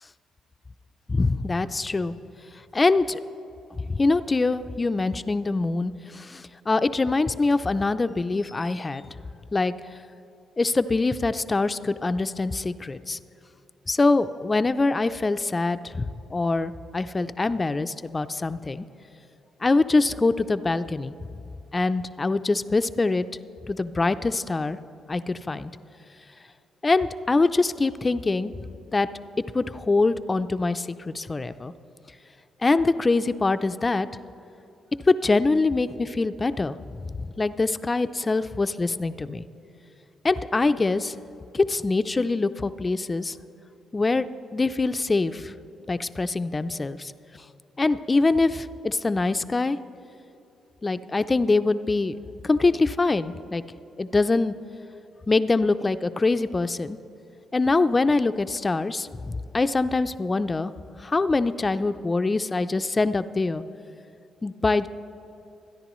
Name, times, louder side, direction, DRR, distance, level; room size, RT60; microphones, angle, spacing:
voice 1, 1.1-2.1 2.7-3.2 3.7-9.1 9.5-9.7 10.6-13.2 13.9-18.8 19.6-21.1 21.7-23.3 23.7-24.8 25.1-25.7 26.8-28.5 28.9-29.1 29.5-31.7 32.6-34.1 35.1-36.8 37.2-39.4 40.2-41.2 41.5-43.4 43.9-44.3 44.5-45.5 45.9-47.1 47.8-49.8 50.8-52.2 52.4-53.6 54.0-54.5 55.3-57.0 57.5-60.7 61.0-63.6 64.4-64.9, left 3 dB, 25° left, 12 dB, 0.4 m, -24 dB
25.5 x 10.5 x 3.1 m, 2.8 s
cardioid pair, 90°, 0 cm